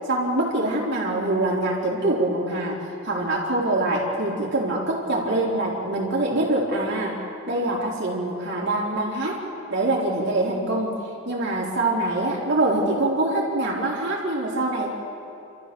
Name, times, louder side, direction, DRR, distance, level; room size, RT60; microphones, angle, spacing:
voice 1, 0.1-7.2 7.5-9.4 9.7-10.9 11.3-14.9, right 2 dB, 60° right, -3 dB, 4.1 m, -24 dB
29.5 x 14.0 x 7.0 m, 2.7 s
head